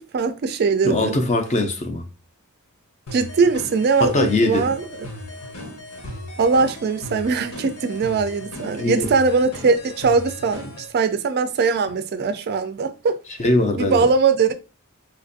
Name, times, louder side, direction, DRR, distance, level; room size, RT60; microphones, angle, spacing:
voice 1, 0.0-1.2 3.1-4.9 6.4-10.7 10.9-13.2 13.7-14.5, right 4 dB, 50° right, 0.4 m, -21 dB
voice 2, 0.8-2.0 4.0-4.7 8.8-9.1 13.4-14.0, left 2 dB, 35° left, 0.5 m, -21 dB
sound 1, 3.1-10.9, left 1 dB, 80° left, 1.0 m, -36 dB
4.2 x 2.4 x 2.6 m
head